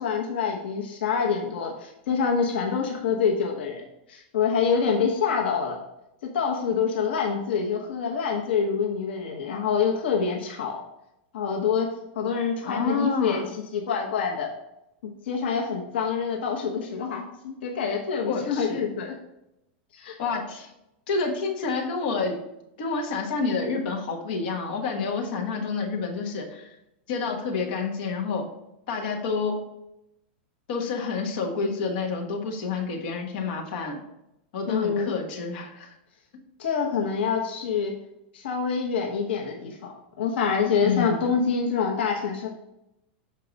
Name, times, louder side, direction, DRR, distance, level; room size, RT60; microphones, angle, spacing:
voice 1, 0.0-5.8 6.2-10.8 11.3-14.5 15.0-19.2 19.9-20.2 34.7-35.1 36.6-38.0 38.3-42.5, left 6 dB, 80° left, 1 dB, 1.1 m, -26 dB
voice 2, 12.6-13.4 18.2-18.8 20.2-20.7 21.1-22.4 22.8-26.7 27.1-28.5 28.9-29.6 30.7-34.0 34.5-35.9 40.8-41.3, left 4 dB, 55° left, 1 dB, 1.4 m, -28 dB
6.6 x 4.6 x 4.0 m, 0.86 s
supercardioid pair, 170°, 6 cm